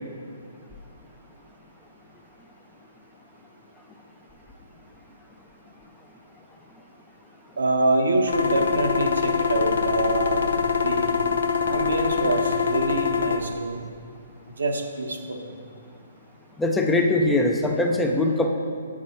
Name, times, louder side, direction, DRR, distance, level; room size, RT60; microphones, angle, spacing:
voice 1, 7.6-11.1 11.6-13.8 14.6-15.4, right 2 dB, 80° right, 3 dB, 0.9 m, -25 dB
sound 1, 8.3-13.4, left 6 dB, 75° left, 0.7 m, -24 dB
voice 2, 16.6-18.5, left 2 dB, 5° left, 2 dB, 0.6 m, -21 dB
7.4 x 5.2 x 4.3 m, 2.3 s
hypercardioid pair, 135°, 0 cm